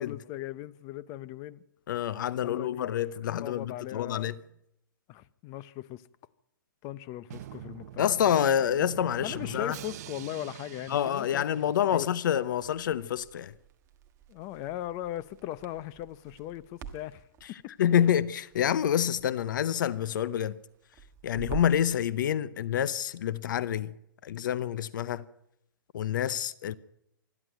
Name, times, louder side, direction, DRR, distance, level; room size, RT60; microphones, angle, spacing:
voice 1, 0.0-1.6 2.4-2.9 3.4-4.3 5.1-6.1 6.8-8.1 9.2-12.1 14.3-17.7 21.3-21.5, left 14 dB, 30° left, 0.7 m, -39 dB
voice 2, 1.9-4.3 8.0-9.8 10.9-13.5 17.8-20.6 21.2-23.9 24.2-25.2 25.9-26.8, left 9 dB, 65° left, 0.8 m, -27 dB
Drum, 7.3-12.2, right 12 dB, 50° right, 0.8 m, -45 dB
Crackle, 12.6-21.9, right 8 dB, 25° right, 1.4 m, -47 dB
26.5 x 11.0 x 9.2 m
hypercardioid pair, 150°, 11 cm